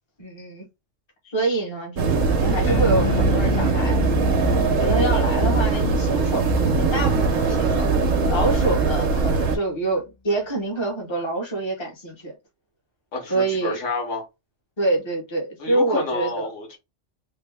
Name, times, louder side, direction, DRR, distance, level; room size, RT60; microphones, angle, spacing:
voice 1, 0.2-0.6 1.2-4.0 4.5-7.9 8.3-12.4 13.3-13.8 14.8-16.5, right 2 dB, 25° left, 1.1 m, -26 dB
sound 1, 2.0-9.6, right 4 dB, 90° right, 1.2 m, -21 dB
Bass guitar, 2.7-9.1, left 3 dB, 50° left, 0.8 m, -29 dB
voice 2, 13.1-14.2 15.6-16.8, left 3 dB, 75° left, 1.6 m, -29 dB
3.5 x 2.2 x 3.4 m
omnidirectional pair, 1.3 m